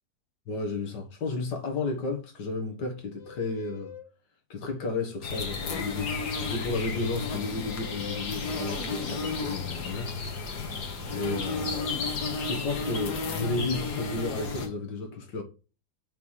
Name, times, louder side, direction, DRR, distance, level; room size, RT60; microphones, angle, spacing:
voice 1, 0.5-3.9 4.5-10.5 11.1-12.1 12.4-15.4, left 3 dB, 90° left, 2.2 m, -33 dB
sound 1, 3.2-4.1 5.3-5.9 7.6-8.3 9.1-9.8, left 7 dB, 55° left, 1.3 m, -47 dB
sound 2, 5.2-14.7, left 4 dB, 70° left, 1.8 m, -33 dB
5.9 x 4.9 x 5.7 m
omnidirectional pair, 1.8 m